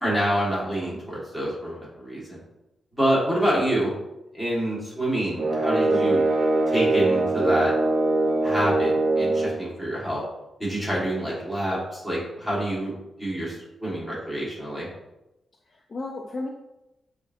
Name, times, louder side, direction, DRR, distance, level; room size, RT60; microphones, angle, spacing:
voice 1, 0.0-2.4 2.9-3.9 4.3-6.2 6.7-7.7 8.4-10.2 10.6-12.9 13.2-13.6 13.8-14.9, right 1 dB, 5° left, -6 dB, 1.5 m, -27 dB
sound 1, 5.4-9.6, right 2 dB, 60° right, 0.5 m, -22 dB
voice 2, 5.9-6.2 15.7-16.5, left 2 dB, 40° left, 2 dB, 0.3 m, -33 dB
6.2 x 2.5 x 2.6 m, 0.94 s
wide cardioid pair, 140°, 0 cm